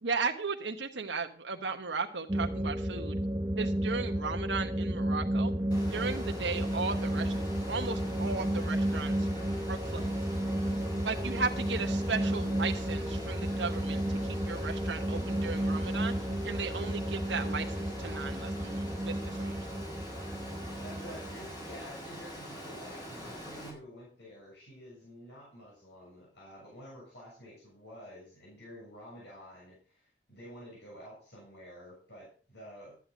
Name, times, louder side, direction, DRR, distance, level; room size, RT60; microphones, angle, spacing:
voice 1, 0.0-3.2 3.6-5.5 5.9-7.3 7.7-9.3 9.7-10.1 11.0-16.1 16.4-19.7, right 4 dB, 75° right, 4 dB, 1.2 m, -36 dB
sound 1, 2.3-21.8, right 1 dB, 15° right, 0.8 m, -32 dB
Water, 5.7-23.7, equal, 20° left, 5.9 m, -44 dB
voice 2, 20.8-33.0, equal, 65° left, -5 dB, 6.8 m, -50 dB
13.0 x 9.9 x 5.1 m, 0.39 s
head